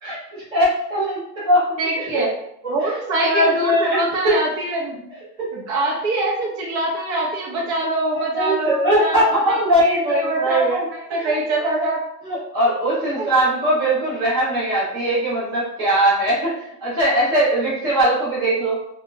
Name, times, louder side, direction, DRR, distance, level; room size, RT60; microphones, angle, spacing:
voice 1, 0.0-1.2 1.5-1.6 2.6-2.9 3.2-4.0 4.2-4.3 5.4-5.5 8.3-10.8 11.1-11.3 12.2-18.8, right 1 dB, 10° right, -10 dB, 0.5 m, -20 dB
voice 2, 1.8-2.3 2.7-5.1 5.5-12.0 13.2-13.3, right 2 dB, 45° right, -3 dB, 1.0 m, -24 dB
2.5 x 2.2 x 3.7 m, 0.76 s
supercardioid pair, 160°, 50 cm